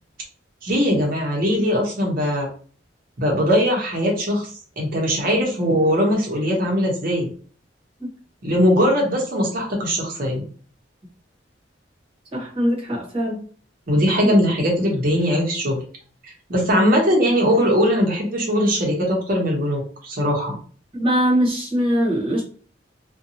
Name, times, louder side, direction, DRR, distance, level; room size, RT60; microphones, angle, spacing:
voice 1, 0.6-2.5 3.2-7.3 8.4-10.4 13.9-15.8 16.2-20.5, equal, 50° right, -1 dB, 0.8 m, -20 dB
voice 2, 12.3-13.4 14.2-14.3 20.9-22.4, equal, 30° right, -3 dB, 1.0 m, -22 dB
2.6 x 2.2 x 2.7 m, 0.42 s
head